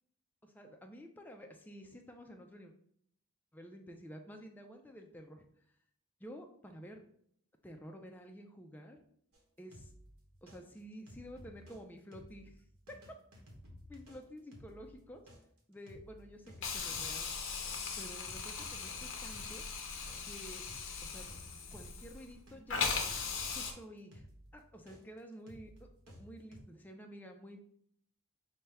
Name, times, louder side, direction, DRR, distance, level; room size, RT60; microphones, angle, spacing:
voice 1, 0.4-2.7 3.5-5.4 6.2-7.0 7.6-9.0 9.6-9.9 10.4-13.0 13.9-15.2 15.7-17.3 18.0-19.6 20.3-20.6 21.0-21.3 21.7-23.2 23.5-24.2 24.5-27.8, equal, 10° left, 3 dB, 0.3 m, -51 dB
sound 1, 9.3-11.8 12.1-22.6 22.9-26.6, equal, 75° right, 1.0 m, -56 dB
Hiss, 16.6-22.3 22.7-23.7, left 5 dB, 55° left, 0.6 m, -39 dB
5.4 x 2.2 x 3.4 m, 0.66 s
head